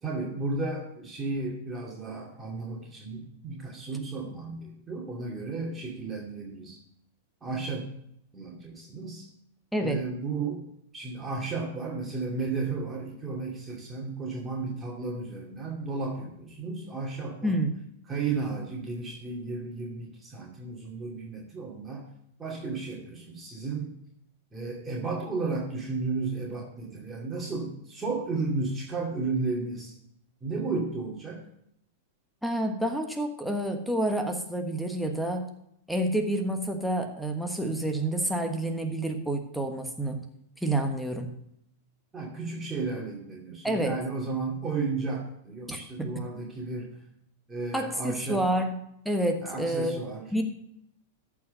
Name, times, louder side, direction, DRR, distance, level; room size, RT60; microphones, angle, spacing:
voice 1, 0.0-6.8 7.4-7.9 8.3-9.3 9.8-10.6 10.9-17.6 18.1-22.1 22.4-23.9 24.5-29.9 30.4-31.4 42.1-46.9 47.5-48.4 49.4-50.3, right 3 dB, 20° right, -2 dB, 2.5 m, -33 dB
voice 2, 32.4-35.5 35.9-40.2 40.6-41.3 43.6-44.0 45.7-46.1 47.7-48.8 49.0-50.0 50.3-50.4, right 1 dB, ahead, 5 dB, 1.3 m, -28 dB
14.0 x 4.7 x 6.8 m, 0.75 s
hypercardioid pair, 100°, 0 cm